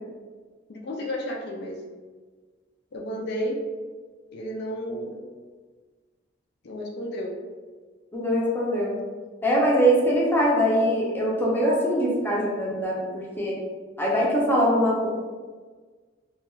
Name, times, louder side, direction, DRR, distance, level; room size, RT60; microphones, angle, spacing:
voice 1, 0.7-1.8 2.9-3.6 4.3-5.2 6.6-7.3, equal, 60° left, -1 dB, 0.4 m, -32 dB
voice 2, 8.1-9.0 9.4-13.6 14.0-15.1, equal, 10° left, -5 dB, 0.5 m, -22 dB
2.4 x 2.3 x 3.0 m, 1.4 s
head